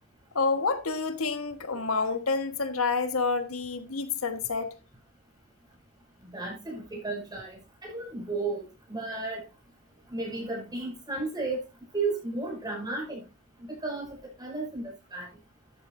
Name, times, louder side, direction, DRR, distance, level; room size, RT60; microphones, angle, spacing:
voice 1, 0.3-4.7, left 4 dB, 85° left, 1.4 m, -28 dB
voice 2, 6.3-9.4 10.1-11.6 11.9-13.2 13.7-15.3, right 3 dB, 20° right, 5.6 m, -34 dB
13.0 x 8.9 x 2.6 m
head